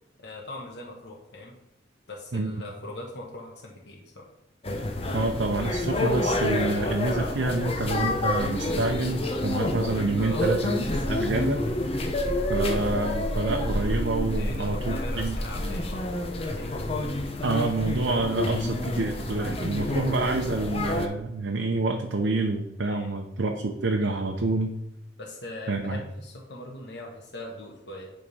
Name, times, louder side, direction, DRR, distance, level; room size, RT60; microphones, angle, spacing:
voice 1, 0.2-1.5 2.1-4.2 10.2-10.5 14.3-16.9 22.8-23.2 25.2-28.1, left 2 dB, 65° left, -1 dB, 1.1 m, -41 dB
sound 1, 4.6-21.1, left 1 dB, 30° left, 0.8 m, -28 dB
voice 2, 5.1-11.6 11.9-12.1 12.5-15.4 17.4-24.7 25.7-26.0, right 2 dB, 85° right, 2 dB, 0.7 m, -27 dB
9.7 x 3.7 x 5.3 m, 0.85 s
head